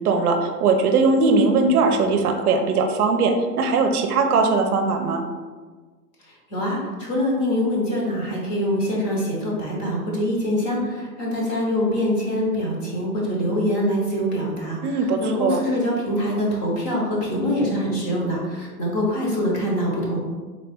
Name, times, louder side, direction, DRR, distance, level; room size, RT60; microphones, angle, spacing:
voice 1, 0.0-5.2 14.8-15.6, right 4 dB, 65° right, 5 dB, 0.7 m, -20 dB
voice 2, 6.5-20.2, equal, 25° left, -3 dB, 0.8 m, -24 dB
3.8 x 2.8 x 3.4 m, 1.4 s
hypercardioid pair, 145°, 49 cm